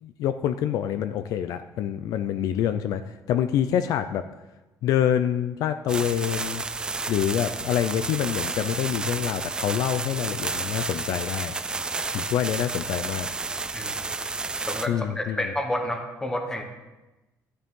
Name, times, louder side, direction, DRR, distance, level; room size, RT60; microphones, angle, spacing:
voice 1, 0.0-3.0 3.3-4.2 4.8-6.6 7.1-11.5 12.1-13.3 14.9-15.4, left 10 dB, 60° left, 10 dB, 0.5 m, -26 dB
sound 1, 5.9-14.9, right 3 dB, 10° right, 0.3 m, -31 dB
voice 2, 14.6-16.6, left 1 dB, 10° left, 4 dB, 1.1 m, -30 dB
13.0 x 9.7 x 3.7 m, 1.1 s
cardioid pair, 175°, 7 cm